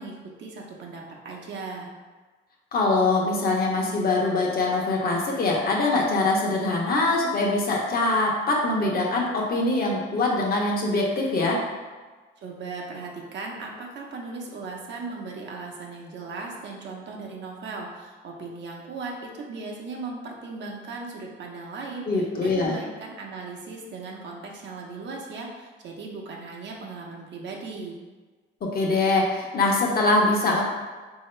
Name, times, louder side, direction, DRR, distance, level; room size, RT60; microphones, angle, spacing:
voice 1, 0.0-1.9 12.4-28.0, right 3 dB, 65° right, -1 dB, 0.8 m, -37 dB
voice 2, 2.7-11.6 22.1-22.7 28.6-30.6, left 2 dB, 50° left, -1 dB, 0.9 m, -23 dB
3.6 x 2.8 x 3.2 m, 1.3 s
cardioid pair, 90°, 20 cm